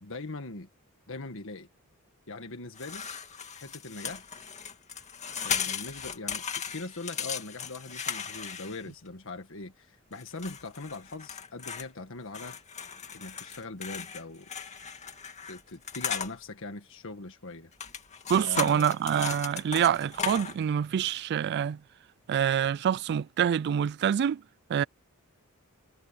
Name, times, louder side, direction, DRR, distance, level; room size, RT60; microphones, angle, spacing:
voice 1, 0.0-0.7 1.1-1.7 2.3-3.1 3.5-4.2 5.4-12.6 13.1-14.5 15.4-17.7 18.4-19.0, left 3 dB, 60° left, 1.6 m, -41 dB
sound 1, 2.8-9.1 10.2-11.9 12.3-16.3 17.7-20.6, left 7 dB, 30° left, 2.2 m, -37 dB
voice 2, 18.3-21.8 22.3-24.4 24.7-24.8, right 8 dB, 50° right, 0.3 m, -26 dB
head